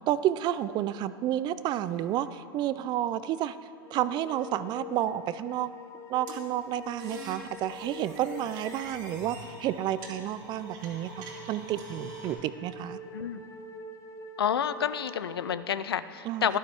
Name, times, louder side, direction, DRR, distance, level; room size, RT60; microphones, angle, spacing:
voice 1, 0.1-3.6 3.9-5.7 6.1-13.0 16.2-16.6, right 12 dB, 35° right, 15 dB, 0.4 m, -30 dB
sound 1, 3.8-15.5, left 3 dB, 25° left, 0.9 m, -46 dB
sound 2, 6.3-12.3, right 3 dB, 60° right, 2.5 m, -46 dB
voice 2, 13.1-13.4 14.4-16.6, left 8 dB, 85° left, 14 dB, 0.4 m, -29 dB
11.5 x 11.5 x 3.5 m, 2.5 s
hypercardioid pair, 100°, 12 cm